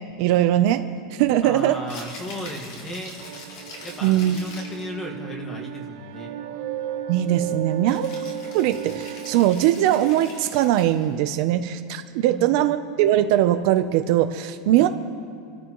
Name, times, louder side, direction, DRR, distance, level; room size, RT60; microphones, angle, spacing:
voice 1, 0.2-0.8 1.2-1.8 4.0-4.4 7.1-14.9, right 12 dB, 45° right, 8 dB, 0.6 m, -21 dB
voice 2, 1.4-3.2 3.8-6.3 12.3-12.7 14.8-14.9, equal, 15° left, 2 dB, 1.8 m, -35 dB
Rattle (instrument), 1.7-4.9 7.9-11.1, left 2 dB, 55° left, 4.1 m, -42 dB
sound 1, 3.2-9.4, right 9 dB, 70° right, 1.7 m, -34 dB
27.5 x 13.5 x 3.1 m, 2.4 s
supercardioid pair, 175°, 3 cm